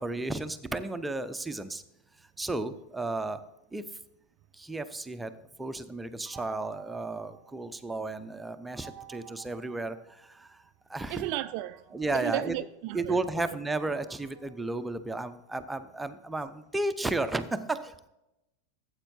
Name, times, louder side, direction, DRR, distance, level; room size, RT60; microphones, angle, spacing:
voice 1, 0.0-1.8 2.4-3.4 3.7-3.9 4.5-10.6 10.9-11.2 11.9-12.6 12.9-18.1, right 2 dB, 10° right, 0.7 m, -33 dB
sound 1, 6.3-8.1 8.8-10.6 11.3-15.5, right 10 dB, 25° right, 1.1 m, -53 dB
voice 2, 11.1-11.8 12.1-13.6, right 15 dB, 50° right, 0.3 m, -34 dB
14.5 x 8.0 x 2.7 m
figure-of-eight pair, 90°, 0 cm